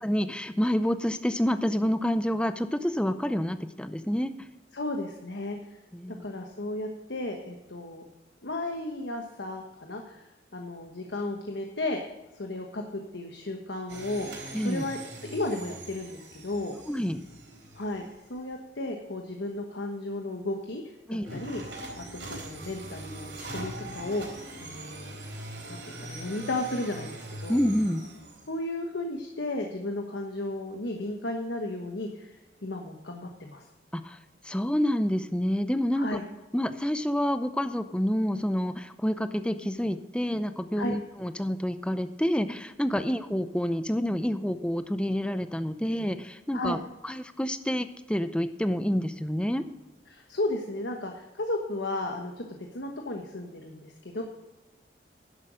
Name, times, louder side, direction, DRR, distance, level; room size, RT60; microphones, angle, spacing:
voice 1, 0.0-4.3 5.9-6.3 14.5-14.8 16.9-17.2 21.1-21.4 27.5-28.0 33.9-34.2 34.4-36.2 36.5-46.8 47.0-49.6, equal, 5° left, 10 dB, 0.5 m, -28 dB
voice 2, 4.7-5.6 6.2-8.0 8.4-12.0 12.3-16.8 17.7-18.0 18.3-20.8 21.1-21.6 22.0-24.3 24.6-25.2 25.7-27.6 28.5-32.3 32.6-33.7 35.9-36.2 40.8-40.9 46.5-46.8 50.1-54.2, left 2 dB, 70° left, 3 dB, 1.2 m, -34 dB
sound 1, 13.9-18.4 21.2-28.5, right 1 dB, 75° right, 4.2 m, -42 dB
11.0 x 8.0 x 6.3 m, 1.1 s
head